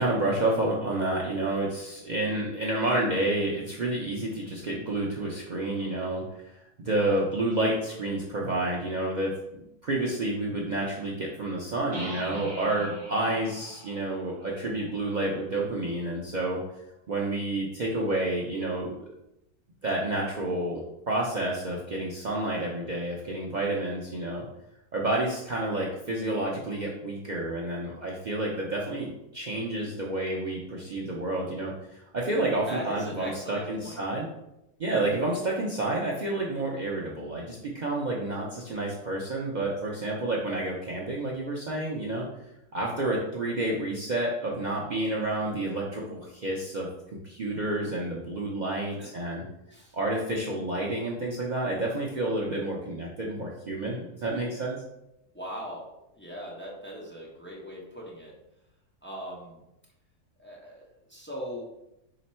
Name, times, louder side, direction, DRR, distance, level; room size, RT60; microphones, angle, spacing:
voice 1, 0.0-6.2 6.8-16.6 17.1-19.0 19.8-24.5 24.9-34.3 34.8-42.3 42.7-46.9 47.2-49.4 49.9-54.8, right 2 dB, 85° right, -3 dB, 0.4 m, -29 dB
sound 1, 11.9-15.6, right 1 dB, 30° right, 0.8 m, -43 dB
voice 2, 32.7-34.0 49.0-49.3 49.7-50.0 55.3-55.8 56.1-58.3 59.0-59.6 60.4-61.6, equal, 10° left, -4 dB, 0.6 m, -40 dB
4.2 x 2.9 x 4.2 m, 0.87 s
omnidirectional pair, 1.6 m